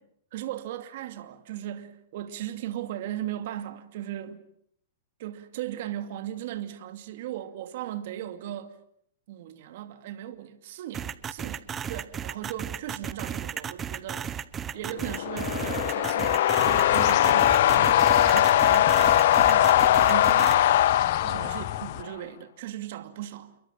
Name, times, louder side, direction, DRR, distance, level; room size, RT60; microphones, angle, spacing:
voice 1, 0.3-4.4 5.2-8.8 9.3-14.4 14.7-21.0 21.2-23.6, right 12 dB, 55° right, 2.5 m, -37 dB
sound 1, 10.9-20.5, right 8 dB, 15° right, 1.0 m, -34 dB
sound 2, 15.0-22.1, left 12 dB, 60° left, 1.2 m, -21 dB
sound 3, 16.6-22.0, left 16 dB, 40° left, 1.3 m, -37 dB
29.5 x 22.5 x 7.5 m
hypercardioid pair, 155°, 0 cm